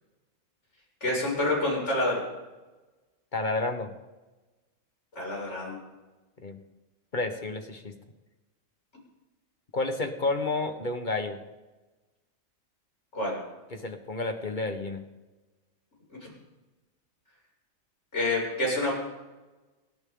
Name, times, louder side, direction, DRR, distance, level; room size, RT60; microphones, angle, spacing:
voice 1, 1.0-2.2 5.1-5.8 13.1-13.4 18.1-18.9, left 1 dB, 55° left, -4 dB, 7.2 m, -27 dB
voice 2, 3.3-3.9 6.4-6.6 7.1-7.9 9.7-11.4 13.7-15.0, left 2 dB, 35° left, 6 dB, 1.5 m, -30 dB
30.0 x 12.0 x 4.0 m, 1.2 s
omnidirectional pair, 1.5 m